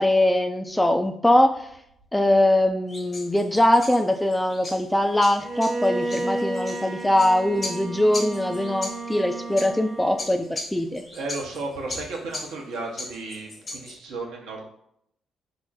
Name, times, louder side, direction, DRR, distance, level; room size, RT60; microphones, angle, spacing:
voice 1, 0.0-1.7 2.1-11.0, left 1 dB, 10° left, 6 dB, 0.4 m, -22 dB
sound 1, 2.9-14.0, left 2 dB, 35° left, 0.9 m, -39 dB
Bowed string instrument, 5.4-10.4, right 2 dB, 35° right, 0.9 m, -32 dB
voice 2, 11.1-14.6, right 3 dB, 65° right, 0 dB, 0.8 m, -34 dB
3.7 x 2.1 x 4.0 m, 0.73 s
hypercardioid pair, 45°, 0 cm